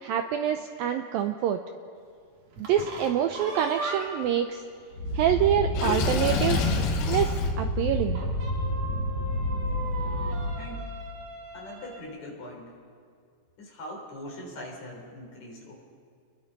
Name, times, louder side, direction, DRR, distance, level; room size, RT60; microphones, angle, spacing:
voice 1, 0.0-1.6 2.6-4.6 5.1-6.8 7.1-8.2, right 9 dB, 90° right, 7 dB, 2.0 m, -26 dB
sound 1, 2.5-4.3 4.8-4.9 5.2-5.3 5.7-6.9 8.1-12.0, right 3 dB, 45° right, 3.0 m, -38 dB
sound 2, 4.9-10.7, equal, 20° left, 5.4 m, -29 dB
Water / Sink (filling or washing), 5.7-7.5, left 5 dB, 75° left, 3.4 m, -28 dB
voice 2, 10.5-10.9 11.5-12.7 13.6-15.7, left 1 dB, 40° left, -1 dB, 4.7 m, -42 dB
30.0 x 21.5 x 4.1 m, 2.2 s
omnidirectional pair, 5.0 m